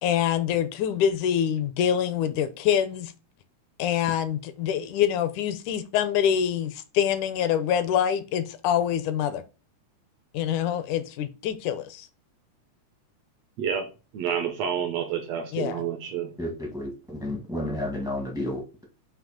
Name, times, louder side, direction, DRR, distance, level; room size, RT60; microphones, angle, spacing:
voice 1, 0.0-3.1 3.8-9.4 10.3-12.1 15.5-15.8, left 9 dB, 80° left, 2.1 m, -25 dB
voice 2, 14.1-16.3, right 8 dB, 75° right, 1.5 m, -29 dB
voice 3, 16.4-18.8, left 1 dB, 5° right, 0.3 m, -32 dB
7.7 x 2.8 x 5.0 m
omnidirectional pair, 3.7 m